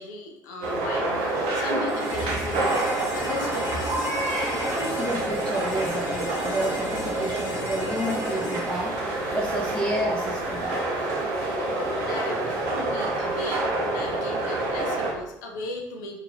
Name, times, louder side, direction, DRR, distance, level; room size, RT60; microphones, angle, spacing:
voice 1, 0.0-2.9 3.1-4.0 12.0-16.2, left 2 dB, 70° left, 2 dB, 0.6 m, -37 dB
sound 1, 0.6-15.1, right 2 dB, 70° right, 0.7 m, -27 dB
sound 2, 1.9-9.9, left 2 dB, 55° left, 1.0 m, -37 dB
voice 2, 4.6-9.0 9.3-10.8, right 1 dB, 10° left, -1 dB, 0.5 m, -30 dB
2.9 x 2.6 x 3.9 m, 0.81 s
figure-of-eight pair, 50°, 10 cm